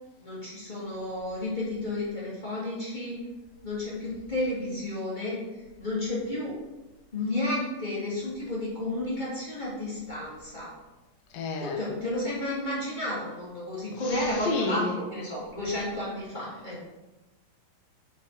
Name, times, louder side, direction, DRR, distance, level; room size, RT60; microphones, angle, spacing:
voice 1, 0.2-3.2 3.6-5.4 5.8-6.5 7.1-10.7 11.6-16.8, left 1 dB, 15° left, -7 dB, 1.5 m, -32 dB
voice 2, 11.3-11.8 14.4-14.9, left 3 dB, 65° left, 1 dB, 2.6 m, -29 dB
9.0 x 4.8 x 5.0 m, 1.1 s
omnidirectional pair, 5.0 m